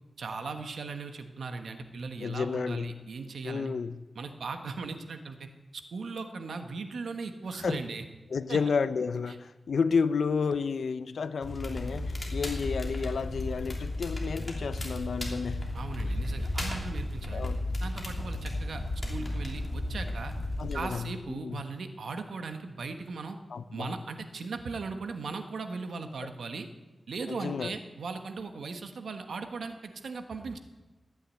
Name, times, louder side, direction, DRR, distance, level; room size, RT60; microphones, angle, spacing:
voice 1, 0.2-3.7 4.1-8.0 8.5-8.6 9.3-9.4 15.7-17.5 17.8-18.8 19.1-20.3 20.7-23.4 23.7-26.7 27.1-30.6, right 4 dB, 90° right, 1.3 m, -38 dB
voice 2, 2.2-3.0 3.4-4.0 7.6-7.8 8.3-15.7 17.3-17.6 20.6-21.6 23.5-23.9 27.3-27.7, left 5 dB, 80° left, 0.6 m, -31 dB
Crackle, 11.4-20.8, left 1 dB, 25° left, 3.1 m, -34 dB
14.5 x 9.6 x 8.5 m
wide cardioid pair, 115°, 0 cm